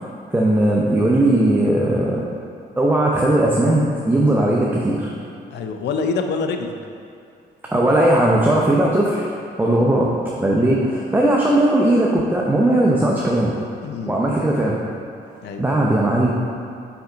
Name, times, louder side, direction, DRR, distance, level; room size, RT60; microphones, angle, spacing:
voice 1, 0.0-2.2 2.8-5.1 7.7-9.3 9.6-10.1 10.4-13.5 14.1-14.7 15.6-16.3, right 1 dB, 10° right, -3 dB, 0.7 m, -18 dB
voice 2, 5.5-6.7 9.6-9.9 13.8-14.2 15.4-15.7, left 4 dB, 75° left, 5 dB, 0.5 m, -26 dB
5.8 x 5.7 x 3.8 m, 2.4 s
cardioid pair, 90°, 18 cm